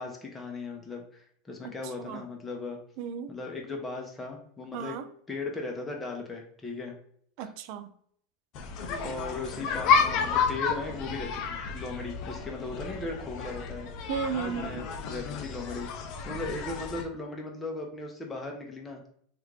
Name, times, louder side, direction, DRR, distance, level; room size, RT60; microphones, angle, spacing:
voice 1, 0.0-2.8 3.3-5.0 5.3-6.9 7.4-7.5 9.0-13.9 14.6-15.9 16.2-19.0, left 3 dB, 15° left, 1 dB, 0.8 m, -37 dB
voice 2, 3.0-3.3 4.7-5.1 7.4-7.9 14.1-14.9, right 7 dB, 60° right, 10 dB, 0.4 m, -34 dB
sound 1, 8.6-17.0, left 5 dB, 50° left, 0.5 m, -31 dB
3.2 x 2.5 x 3.1 m, 0.63 s
supercardioid pair, 120°, 0 cm